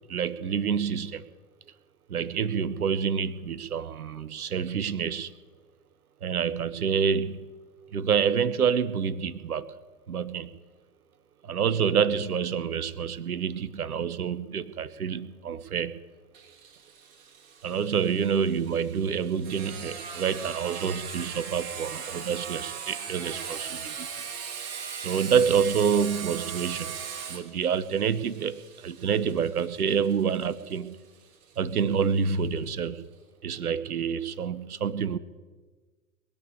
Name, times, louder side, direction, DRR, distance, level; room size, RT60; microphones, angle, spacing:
voice 1, 0.1-1.3 2.1-5.3 6.2-7.5 7.9-9.7 10.1-10.5 11.4-16.0 17.6-24.1 25.0-27.0 27.3-31.0 31.6-33.1 33.4-35.2, right 7 dB, 80° right, 16 dB, 1.0 m, -27 dB
Sawing, 16.3-31.8, right 6 dB, 50° right, 2.7 m, -39 dB
21.0 x 7.0 x 9.6 m, 1.4 s
figure-of-eight pair, 100°, 44 cm